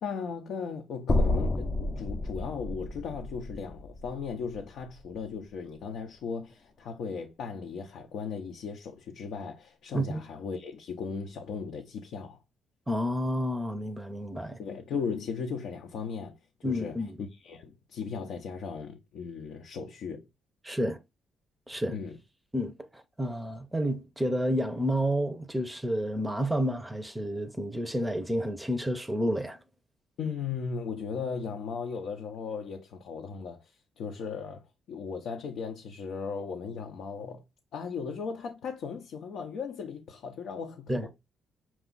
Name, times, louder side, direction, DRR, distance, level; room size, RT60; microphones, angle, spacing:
voice 1, 0.0-12.4 14.6-20.3 21.9-22.2 30.2-37.4 37.7-40.9, left 5 dB, 75° left, 0.6 m, -37 dB
sound 1, 1.1-5.3, left 2 dB, 35° left, 0.6 m, -30 dB
voice 2, 12.9-14.6 16.6-17.1 20.6-21.0 21.7-22.0 22.5-29.6 40.9-41.1, equal, 10° right, 0.6 m, -30 dB
5.9 x 2.3 x 3.8 m
cardioid pair, 90°, 0 cm